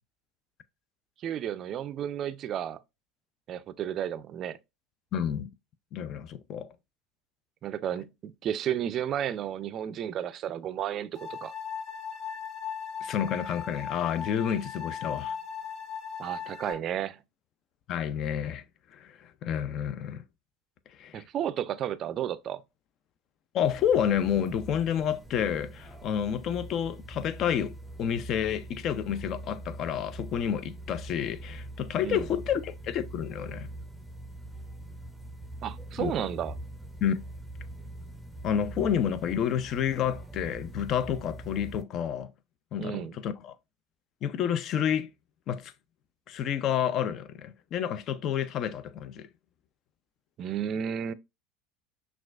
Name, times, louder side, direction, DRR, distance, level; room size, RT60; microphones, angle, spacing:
voice 1, 1.2-2.8 3.5-4.6 7.6-11.5 16.2-17.2 21.1-22.6 32.0-32.3 35.6-36.5 42.8-43.2 50.4-51.1, right 10 dB, 45° right, 0.4 m, -32 dB
voice 2, 5.1-5.5 5.9-6.7 13.0-15.3 17.9-18.6 18.9-20.2 21.0-21.2 23.5-27.7 28.0-33.7 36.0-36.1 37.0-37.2 38.4-42.3 42.7-43.6 44.2-45.1 45.5-45.7 46.3-49.3, left 9 dB, 50° left, 0.4 m, -29 dB
sound 1, 11.1-16.7, left 7 dB, 30° left, 1.1 m, -38 dB
sound 2, 23.6-41.8, right 1 dB, 5° right, 0.6 m, -43 dB
5.9 x 2.3 x 2.4 m
hypercardioid pair, 95°, 0 cm